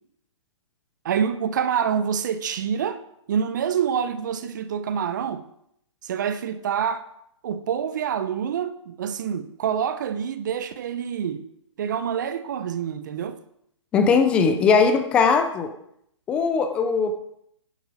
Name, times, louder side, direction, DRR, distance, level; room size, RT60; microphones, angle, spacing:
voice 1, 1.0-3.0 3.3-5.4 6.0-7.0 7.4-11.5 11.8-13.4, right 8 dB, 40° right, 0.8 m, -26 dB
voice 2, 13.9-15.7 16.3-17.1, left 5 dB, 5° left, 0.4 m, -19 dB
11.0 x 9.0 x 4.9 m
hypercardioid pair, 165°, 16 cm